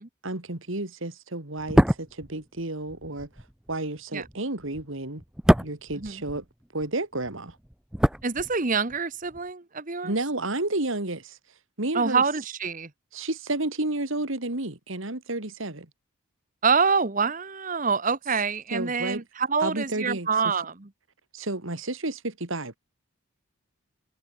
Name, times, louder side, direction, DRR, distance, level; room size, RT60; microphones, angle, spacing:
voice 1, 0.2-3.3 3.7-5.2 5.6-6.4 6.7-7.6 10.0-11.4 11.8-12.2 13.1-15.9 18.7-19.2 19.6-20.5 21.3-22.8, right 2 dB, 70° right, 2.6 m, -31 dB
sound 1, 1.6-6.9 7.1-9.0 9.2-9.4, equal, 5° right, 0.4 m, -26 dB
voice 2, 8.2-10.1 11.9-12.9 16.6-20.9, right 5 dB, 40° right, 1.3 m, -26 dB
head